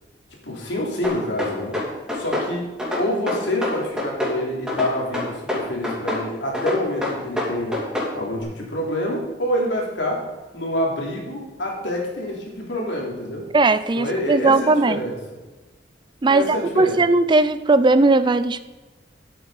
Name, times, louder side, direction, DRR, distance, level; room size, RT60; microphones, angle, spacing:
voice 1, 0.4-1.8 2.1-2.7 3.0-10.2 10.5-13.5 13.9-15.2 16.3-17.0, left 1 dB, 90° left, -1 dB, 3.3 m, -27 dB
sound 1, 1.0-2.5 2.8-4.4 4.7-6.2 6.5-8.1, left 1 dB, 5° right, 3.0 m, -26 dB
voice 2, 13.5-15.0 16.2-18.6, right 3 dB, 25° right, 14 dB, 0.4 m, -18 dB
11.0 x 8.6 x 5.6 m, 1.2 s
head